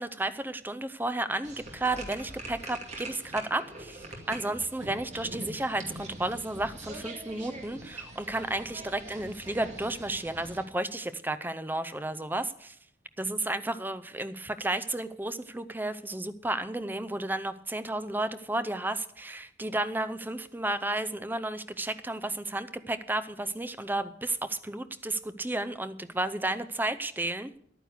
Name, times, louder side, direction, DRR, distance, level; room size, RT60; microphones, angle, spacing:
voice 1, 0.0-12.8 13.2-27.5, right 2 dB, 10° right, 12 dB, 0.5 m, -32 dB
sound 1, 1.4-10.7, right 1 dB, 40° right, 2.2 m, -43 dB
11.0 x 9.3 x 6.6 m, 0.66 s
head